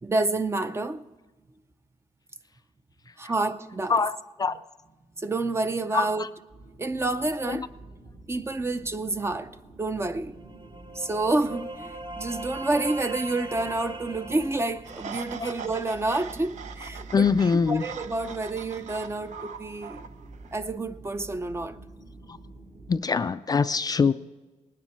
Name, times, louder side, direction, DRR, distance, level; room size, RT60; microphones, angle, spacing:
voice 1, 0.0-1.1 3.2-4.0 5.2-6.2 6.8-7.7 8.3-10.3 10.9-20.0 20.5-21.8, right 2 dB, 20° right, 0.6 m, -29 dB
voice 2, 3.9-4.6 5.9-6.3 7.5-7.7 15.4-15.5 17.1-17.8 22.3-22.4 22.9-24.1, left 5 dB, 30° left, 0.4 m, -24 dB
sound 1, 6.5-23.0, right 2 dB, 55° right, 3.7 m, -48 dB
sound 2, 10.3-16.0, right 2 dB, 35° right, 1.2 m, -40 dB
sound 3, 14.9-20.6, right 6 dB, 70° right, 0.7 m, -42 dB
19.0 x 9.9 x 4.5 m
cardioid pair, 125°, 13 cm